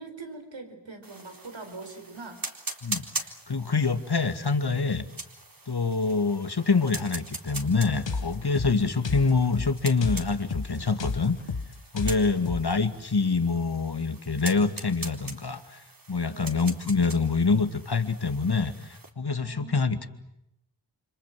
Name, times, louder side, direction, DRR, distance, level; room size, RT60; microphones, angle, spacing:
voice 1, 0.0-2.4 8.7-9.0 12.2-13.0 16.3-16.7 19.4-20.1, right 3 dB, 90° right, 6 dB, 4.8 m, -43 dB
sound 1, 1.0-19.1, right 2 dB, 50° right, 3.9 m, -42 dB
voice 2, 3.5-5.1 5.7-11.3 11.9-15.8 16.1-20.1, left 4 dB, 60° left, 9 dB, 2.4 m, -26 dB
sound 2, 8.1-12.8, left 4 dB, 80° left, 1.6 m, -33 dB
30.0 x 26.0 x 7.7 m, 0.81 s
wide cardioid pair, 40°, 44 cm